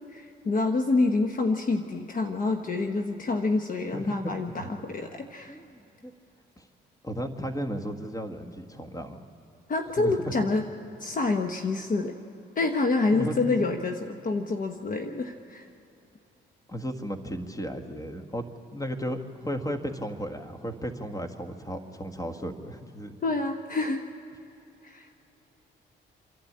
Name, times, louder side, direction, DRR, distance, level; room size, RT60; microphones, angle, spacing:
voice 1, 0.1-5.6 9.7-10.6 11.0-12.1 12.5-15.7 23.2-24.0 24.8-25.2, left 3 dB, 40° left, 5 dB, 1.1 m, -27 dB
voice 2, 3.9-4.3 4.6-4.7 5.5-6.1 6.6-6.7 7.0-9.2 10.0-10.3 13.1-13.6 16.7-23.2, equal, 15° left, 6 dB, 1.7 m, -35 dB
27.0 x 11.5 x 8.7 m, 2.9 s
cardioid pair, 90°, 20 cm